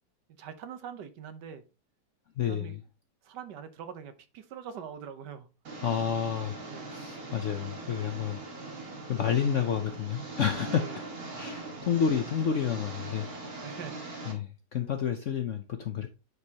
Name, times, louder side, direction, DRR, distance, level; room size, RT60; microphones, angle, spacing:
voice 1, 0.4-1.6 2.5-2.8 3.2-5.5 6.6-6.9 10.7-11.0 11.4-12.1 13.6-13.9, right 8 dB, 70° right, 1.4 m, -43 dB
voice 2, 2.4-2.8 5.8-6.6 6.9-8.4 9.1-11.0 11.4-13.3 14.3-16.1, left 8 dB, 65° left, 0.7 m, -30 dB
Engine, 5.6-14.3, right 2 dB, 55° right, 2.3 m, -41 dB
9.4 x 4.7 x 2.8 m
omnidirectional pair, 1.9 m